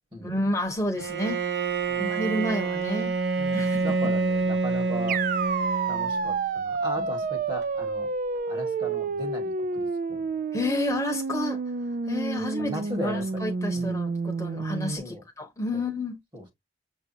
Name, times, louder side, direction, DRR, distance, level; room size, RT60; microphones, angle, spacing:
voice 1, 0.2-1.4 2.0-3.1 3.5-3.8 7.0-7.1 10.5-11.6 12.1-12.7 13.0-16.1, left 1 dB, 20° left, 1.0 m, -30 dB
Bowed string instrument, 1.0-6.4, right 3 dB, 65° right, 0.8 m, -27 dB
voice 2, 1.9-2.3 3.4-5.2 5.9-8.1 8.5-10.3 12.4-13.4 13.7-14.0 15.0-15.2 15.7-15.9 16.3-16.5, equal, 30° right, 1.4 m, -37 dB
sound 1, 5.1-15.0, right 4 dB, 50° right, 0.4 m, -29 dB
6.6 x 2.7 x 2.6 m
head